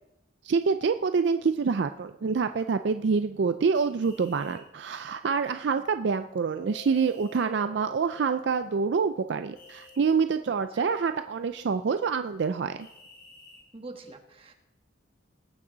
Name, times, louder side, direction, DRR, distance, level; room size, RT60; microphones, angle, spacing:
voice 1, 0.4-12.9, right 5 dB, 60° right, 9 dB, 0.4 m, -26 dB
sound 1, 3.8-4.6 6.8-7.5 9.6-10.0 12.8-13.6, left 3 dB, 50° left, 4.9 m, -53 dB
Mallet percussion, 6.5-12.9, left 5 dB, 70° left, 2.8 m, -51 dB
voice 2, 13.7-14.5, right 2 dB, 30° right, 3 dB, 1.3 m, -43 dB
19.5 x 8.6 x 3.9 m, 0.92 s
head